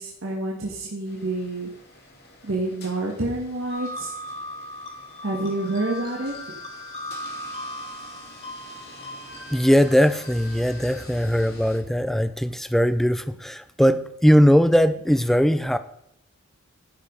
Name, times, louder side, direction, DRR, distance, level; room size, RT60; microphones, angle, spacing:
voice 1, 0.0-1.7 2.4-4.1 5.2-6.5, right 2 dB, 70° right, -2 dB, 1.5 m, -28 dB
sound 1, 1.0-11.8, left 2 dB, 50° left, 2.3 m, -48 dB
sound 2, 3.7-11.0, left 1 dB, 30° left, 2.2 m, -38 dB
voice 2, 9.5-15.8, equal, ahead, 12 dB, 0.4 m, -20 dB
11.0 x 5.0 x 5.2 m, 0.78 s
head